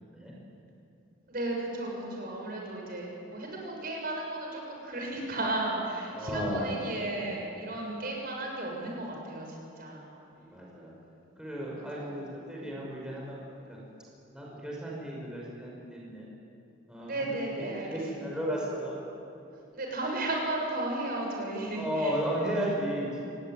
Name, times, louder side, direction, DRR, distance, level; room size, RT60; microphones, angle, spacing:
voice 1, 1.3-10.1 11.8-12.1 17.0-18.3 19.7-22.1, right 2 dB, 50° right, -1 dB, 6.9 m, -34 dB
voice 2, 6.1-6.7 10.3-10.9 11.4-13.8 14.3-16.3 16.9-18.9 21.7-23.2, equal, 5° right, -4 dB, 5.9 m, -34 dB
28.0 x 20.5 x 9.3 m, 2.7 s
head